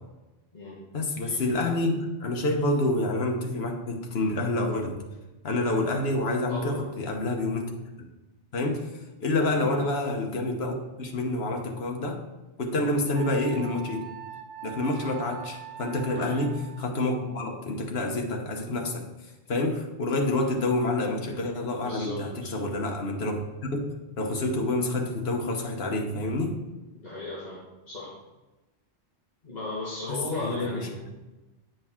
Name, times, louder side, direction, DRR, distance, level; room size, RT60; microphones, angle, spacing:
voice 1, 0.9-5.0 5.4-7.7 8.5-12.2 12.6-14.0 14.6-19.0 19.5-23.9 24.2-26.6 30.1-30.9, left 2 dB, 65° left, 2 dB, 1.2 m, -28 dB
voice 2, 6.5-6.8 9.5-9.7 12.8-12.9 16.2-16.4 21.8-22.5 27.0-27.6 27.9-28.1 29.4-31.0, left 2 dB, 40° left, -8 dB, 1.5 m, -36 dB
Wind instrument woodwind instrument, 13.1-16.9, right 10 dB, 85° right, 1.0 m, -42 dB
8.4 x 5.2 x 3.6 m, 1.1 s
omnidirectional pair, 1.2 m